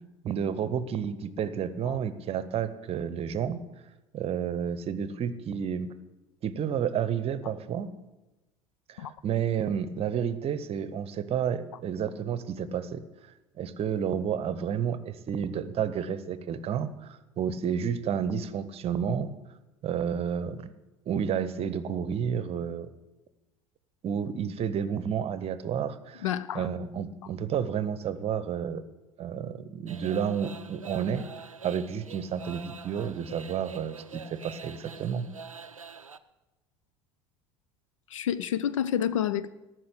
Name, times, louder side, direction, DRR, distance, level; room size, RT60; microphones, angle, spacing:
voice 1, 0.2-3.6 4.1-5.9 6.4-7.9 8.9-13.0 13.6-19.3 19.8-20.7 21.1-22.9 24.0-26.3 26.5-28.8 29.2-31.3 31.6-35.3, right 8 dB, 35° right, 14 dB, 0.8 m, -31 dB
voice 2, 26.2-26.6 38.1-39.5, left 10 dB, 70° left, 16 dB, 0.5 m, -29 dB
sound 1, 29.9-36.2, right 5 dB, 90° right, 0.4 m, -45 dB
14.0 x 6.2 x 8.0 m, 1.0 s
figure-of-eight pair, 70°, 17 cm